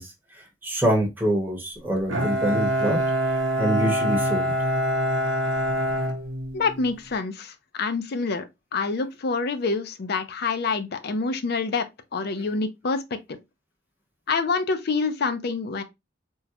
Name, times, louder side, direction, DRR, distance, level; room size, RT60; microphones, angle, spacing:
voice 1, 0.0-3.0 3.3-4.5, right 1 dB, 10° right, 0.8 m, -26 dB
Bowed string instrument, 2.1-7.0, equal, 80° right, 0.7 m, -25 dB
voice 2, 6.5-8.5 8.7-11.9 12.1-13.0 13.3-13.4 14.3-15.8, left 4 dB, 55° left, 0.5 m, -26 dB
3.6 x 2.1 x 2.7 m
head